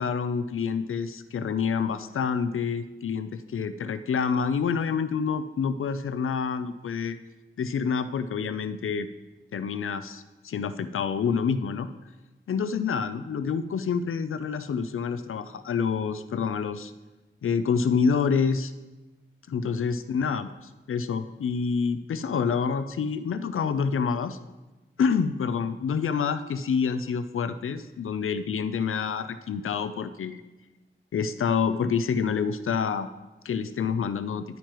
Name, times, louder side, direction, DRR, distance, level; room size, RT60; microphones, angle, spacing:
voice 1, 0.0-7.2 7.6-9.1 9.5-11.9 12.5-16.9 17.4-18.7 19.5-24.4 25.0-30.4 31.1-33.1 33.4-34.4, left 6 dB, 80° left, 12 dB, 0.4 m, -27 dB
10.5 x 9.1 x 3.0 m, 1.1 s
wide cardioid pair, 80°, 21 cm